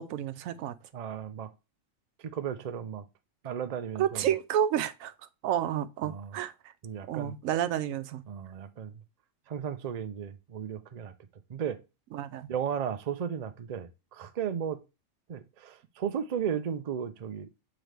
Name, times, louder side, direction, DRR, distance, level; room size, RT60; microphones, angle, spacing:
voice 1, 0.0-0.8 4.0-5.1 5.4-6.7 7.1-8.2 12.1-12.5, right 10 dB, 90° right, 1.0 m, -30 dB
voice 2, 0.9-1.5 2.3-3.0 3.4-4.3 6.0-6.3 6.8-7.3 8.3-8.9 9.5-11.1 11.5-11.8 12.5-14.8 15.3-17.6, right 8 dB, 45° right, 0.5 m, -35 dB
7.6 x 3.8 x 3.4 m
omnidirectional pair, 1.4 m